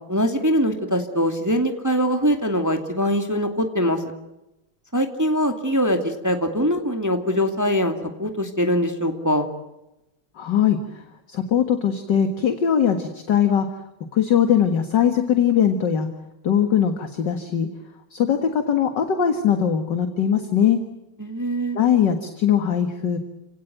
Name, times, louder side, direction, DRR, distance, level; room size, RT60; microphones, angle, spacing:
voice 1, 0.1-4.0 4.9-9.5 21.2-21.8, equal, 10° right, 5 dB, 2.2 m, -22 dB
voice 2, 10.4-10.8 11.3-13.7 14.1-16.1 16.4-17.7 18.1-20.8 21.7-23.2, left 8 dB, 55° left, 7 dB, 2.2 m, -20 dB
29.5 x 18.5 x 9.3 m, 0.93 s
omnidirectional pair, 2.4 m